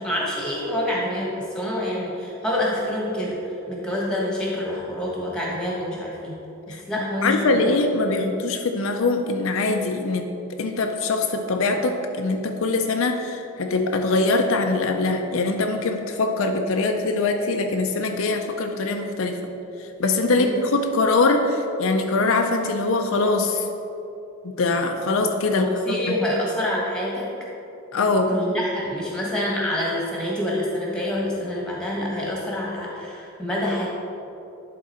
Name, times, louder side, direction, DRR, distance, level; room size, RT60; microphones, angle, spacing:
voice 1, 0.0-3.4 3.7-6.4 6.7-7.8 20.3-20.6 25.5-27.3 28.3-33.9, left 1 dB, 5° left, -4 dB, 1.3 m, -27 dB
voice 2, 7.2-10.3 10.6-19.4 19.8-23.7 24.4-26.1 27.9-28.3, left 3 dB, 70° left, 4 dB, 0.5 m, -23 dB
11.0 x 3.7 x 4.3 m, 2.8 s
head